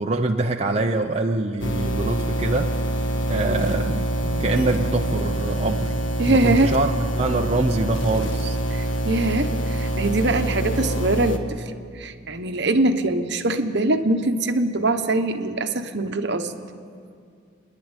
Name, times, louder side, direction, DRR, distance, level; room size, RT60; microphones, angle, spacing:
voice 1, 0.0-2.7 3.3-4.1 4.4-6.0 6.3-8.6, right 2 dB, 30° right, 2 dB, 0.7 m, -24 dB
sound 1, 1.6-11.4, right 1 dB, 65° left, 1.5 m, -25 dB
Bass guitar, 4.2-10.5, right 2 dB, 85° right, 1.1 m, -43 dB
voice 2, 6.2-6.7 8.7-16.5, right 2 dB, 55° right, 7 dB, 1.1 m, -23 dB
28.5 x 11.0 x 9.1 m, 2.3 s
head